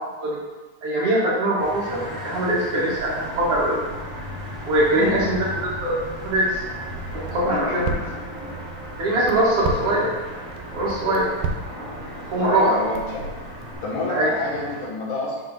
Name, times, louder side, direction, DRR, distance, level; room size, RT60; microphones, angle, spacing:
voice 1, 0.8-3.8 4.6-6.6 7.1-7.9 9.0-10.1 10.7-11.3 12.3-12.8 14.1-14.3, right 1 dB, 60° right, -5 dB, 1.8 m, -22 dB
sound 1, 1.6-14.9, equal, 30° right, 1.7 m, -36 dB
Crackle, 2.9-13.7, right 4 dB, 90° right, 2.1 m, -36 dB
voice 2, 7.5-8.0 12.4-13.3 13.8-15.4, left 2 dB, 80° left, -4 dB, 2.6 m, -28 dB
6.5 x 6.0 x 2.6 m, 1.3 s
omnidirectional pair, 3.4 m